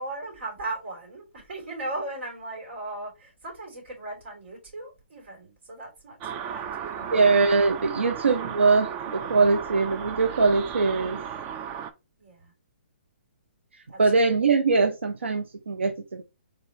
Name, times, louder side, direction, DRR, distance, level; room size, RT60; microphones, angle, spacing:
voice 1, 0.0-7.2 8.0-8.1 12.2-12.5 13.9-14.0 14.3-14.4, right 2 dB, 70° right, 2.9 m, -37 dB
sound 1, 6.2-11.9, right 8 dB, 25° right, 0.5 m, -35 dB
voice 2, 7.1-11.2 14.0-16.2, right 4 dB, 85° right, 0.6 m, -22 dB
3.9 x 3.8 x 3.0 m
hypercardioid pair, 140°, 6 cm